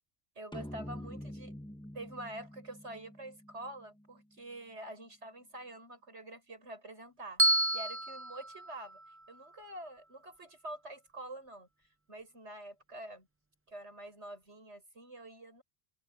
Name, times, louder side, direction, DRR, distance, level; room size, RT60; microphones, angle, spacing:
voice 1, 0.3-1.5 1.9-9.0 9.3-11.7 12.1-13.3 13.7-15.6, right 1 dB, 85° right, 6.9 m, -46 dB
sound 1, 0.5-4.0, equal, 5° left, 1.4 m, -46 dB
Bell, 7.4-9.6, right 1 dB, 15° right, 0.7 m, -31 dB
omnidirectional pair, 1.1 m